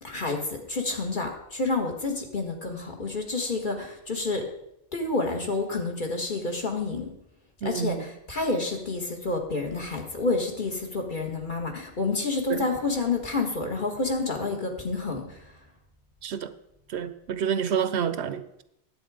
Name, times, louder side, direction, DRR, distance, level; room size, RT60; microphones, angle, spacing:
voice 1, 0.0-4.5 4.9-7.1 7.6-15.5, left 3 dB, 45° left, 1.7 m, -29 dB
voice 2, 7.6-8.0 12.5-12.7 16.2-16.5 16.9-18.6, right 8 dB, 70° right, 0.9 m, -29 dB
10.5 x 8.1 x 4.9 m
omnidirectional pair, 1.2 m